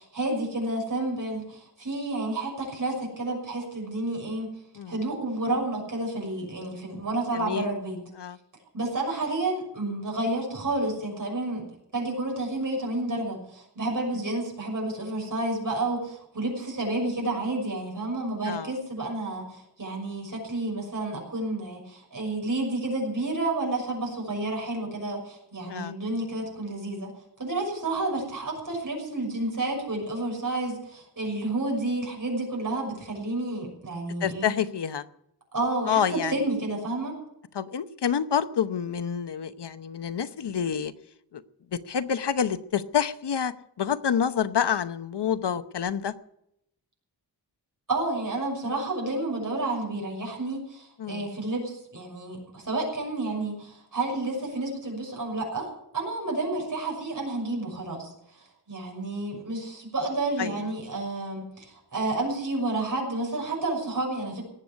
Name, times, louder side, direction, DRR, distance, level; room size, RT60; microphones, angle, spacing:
voice 1, 0.0-4.5 4.9-8.0 8.7-11.6 11.9-34.5 35.5-37.1 47.9-55.7 55.9-58.1 58.4-64.4, right 2 dB, 50° right, 0 dB, 6.3 m, -30 dB
voice 2, 7.3-7.7 8.2-8.4 18.5-18.7 25.7-25.9 34.2-35.0 35.9-36.4 37.5-40.9 41.3-41.4 41.7-46.1 51.0-51.3 60.4-60.6, left 8 dB, 75° left, 12 dB, 0.9 m, -28 dB
19.0 x 8.0 x 8.2 m, 0.77 s
wide cardioid pair, 120°, 41 cm